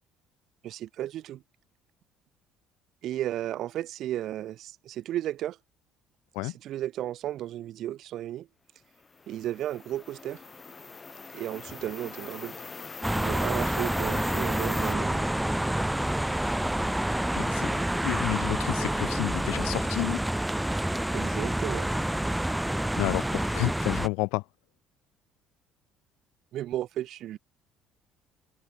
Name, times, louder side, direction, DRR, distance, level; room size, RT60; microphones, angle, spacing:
voice 1, 0.6-1.4 3.0-5.6 6.4-8.5 9.3-10.4 11.3-12.6 13.2-15.3 21.1-21.9 26.5-27.4, right 12 dB, 65° right, 7.9 m, -34 dB
sound 1, 9.0-14.9, left 4 dB, 25° left, 7.7 m, -42 dB
sound 2, 13.0-24.1, right 1 dB, 5° right, 3.1 m, -28 dB
voice 2, 17.4-20.2 23.0-24.4, left 26 dB, 85° left, 2.5 m, -31 dB
open air
supercardioid pair, 85°, 0 cm